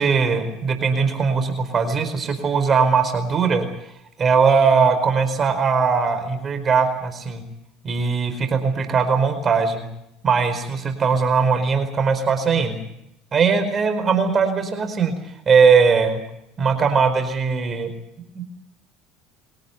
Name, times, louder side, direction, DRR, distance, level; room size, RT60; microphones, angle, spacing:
voice 1, 0.0-3.7 4.2-7.4 7.8-9.9 10.2-12.8 13.3-15.1 15.5-16.2 16.6-17.9 18.3-18.4, right 5 dB, 35° right, 8 dB, 4.8 m, -19 dB
23.5 x 18.0 x 9.5 m, 0.80 s
supercardioid pair, 85°, 0 cm